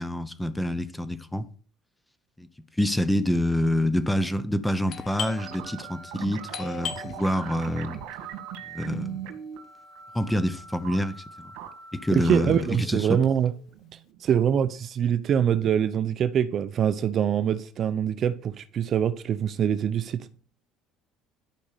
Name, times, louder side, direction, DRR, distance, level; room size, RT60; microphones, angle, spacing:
voice 1, 0.0-1.5 2.4-2.5 2.8-8.0 8.7-9.2 10.1-11.5 11.9-13.2, left 1 dB, 5° left, 0.9 m, -27 dB
Doorbell, 4.9-10.3, left 7 dB, 50° left, 1.4 m, -40 dB
sound 1, 5.4-14.3, right 8 dB, 85° right, 2.4 m, -41 dB
voice 2, 12.2-13.5 14.2-20.3, right 9 dB, 40° right, 0.7 m, -24 dB
12.0 x 5.3 x 6.8 m
cardioid pair, 140°, 0 cm